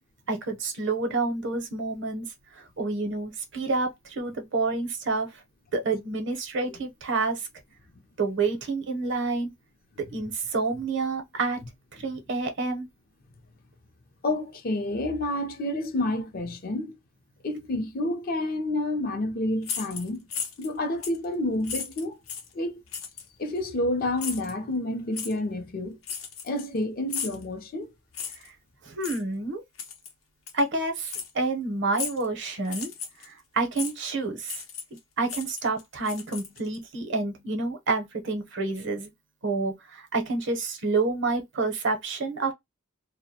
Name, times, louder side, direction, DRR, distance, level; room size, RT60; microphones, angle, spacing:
voice 1, 0.3-2.3 2.8-5.3 5.7-7.5 8.2-9.5 10.1-11.6 11.9-12.9 28.8-29.6 30.5-32.9 33.2-34.6 35.2-39.1 39.4-42.5, right 3 dB, 60° right, 0.7 m, -28 dB
voice 2, 14.2-17.0 17.4-20.2 20.6-22.2 22.5-22.8 23.4-26.0 26.4-27.9, left 1 dB, 45° left, 0.5 m, -29 dB
sound 1, 19.6-20.7 21.0-21.2 21.6-22.5 22.9-23.3 24.2-24.5 25.1-25.3 26.0-26.8 27.1-27.4 28.1-28.5 29.0-29.2 29.8-30.1 30.5-30.6 31.1-31.3 31.9-32.3 32.6-33.3 33.8-33.9 34.4-35.0 35.2-36.8, left 6 dB, 90° left, 0.7 m, -35 dB
2.3 x 2.1 x 2.7 m
head